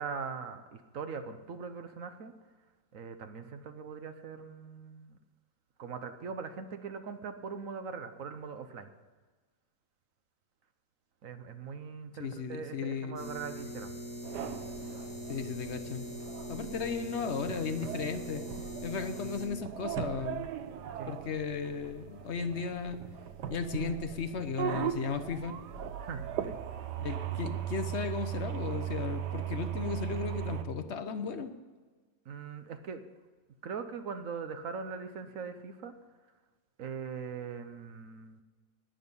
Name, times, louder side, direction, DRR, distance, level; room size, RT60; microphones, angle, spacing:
voice 1, 0.0-2.3 2.9-5.2 5.8-8.9 11.2-13.9 20.9-21.1 26.0-26.6 32.3-33.0 33.6-35.9 36.8-38.4, right 5 dB, 55° right, 9 dB, 1.1 m, -41 dB
voice 2, 12.2-13.2 15.3-16.1 16.5-18.4 18.8-20.5 21.1-23.0 23.5-25.6 27.0-31.5, left 5 dB, 55° left, 8 dB, 0.8 m, -35 dB
sound 1, 13.2-19.5, equal, 30° left, 3.9 m, -42 dB
sound 2, 14.2-30.6, right 10 dB, 75° right, 1.3 m, -38 dB
19.5 x 6.5 x 5.4 m, 1.3 s
omnidirectional pair, 1.9 m